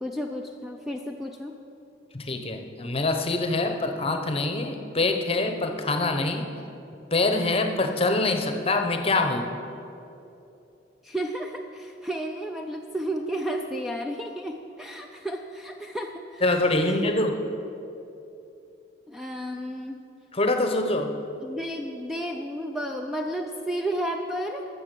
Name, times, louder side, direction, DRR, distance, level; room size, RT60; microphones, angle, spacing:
voice 1, 0.0-1.6 11.0-16.4 16.8-17.1 19.1-20.0 20.8-24.7, right 1 dB, ahead, 2 dB, 0.4 m, -32 dB
voice 2, 2.1-6.5 7.1-9.5 16.4-17.3 20.3-21.1, left 2 dB, 30° left, 6 dB, 0.8 m, -25 dB
13.0 x 7.0 x 6.7 m, 2.8 s
head